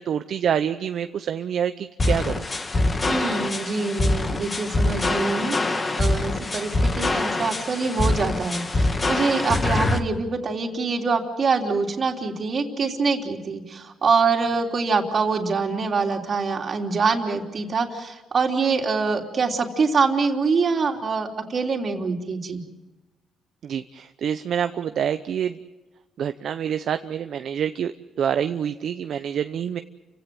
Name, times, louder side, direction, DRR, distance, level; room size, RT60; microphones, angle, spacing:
voice 1, 0.0-2.5 23.6-25.6 26.2-29.8, right 8 dB, 65° right, 9 dB, 0.7 m, -27 dB
sound 1, 2.0-10.0, left 2 dB, 30° left, 2.0 m, -24 dB
voice 2, 3.1-22.6, right 4 dB, 45° right, 2 dB, 3.2 m, -25 dB
29.5 x 17.0 x 7.7 m, 1.1 s
cardioid pair, 90°, 0 cm